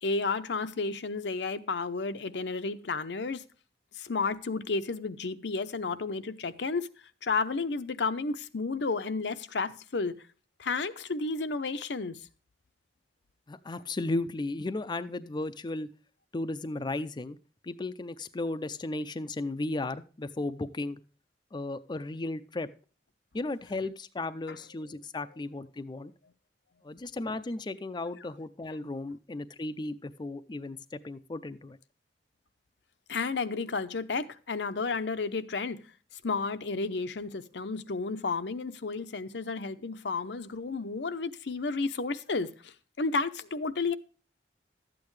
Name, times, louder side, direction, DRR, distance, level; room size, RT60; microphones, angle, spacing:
voice 1, 0.0-3.4 3.9-6.9 7.2-10.1 10.6-12.2 24.5-24.6 33.1-35.8 36.2-44.0, left 4 dB, 75° left, 0.7 m, -32 dB
voice 2, 13.5-15.9 16.3-17.4 17.6-21.0 21.5-22.7 23.3-26.1 26.8-31.8, left 2 dB, 25° left, 0.4 m, -35 dB
12.5 x 8.6 x 3.2 m
head